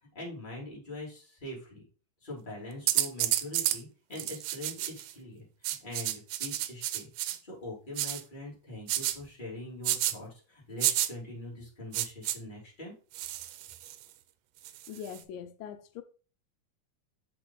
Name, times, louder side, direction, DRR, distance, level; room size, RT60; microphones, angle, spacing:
voice 1, 0.1-1.8 2.2-12.9, left 1 dB, 15° left, 2.8 m, -43 dB
sound 1, 2.9-3.8 4.2-5.1 5.6-7.4 8.0-8.2 8.9-9.2 9.8-10.1 10.8-11.1 11.9-12.4 13.1-14.0 14.7-15.2, right 14 dB, 85° right, 2.2 m, -30 dB
voice 2, 14.9-16.0, left 8 dB, 90° left, 2.3 m, -42 dB
6.1 x 5.4 x 3.9 m
omnidirectional pair, 3.9 m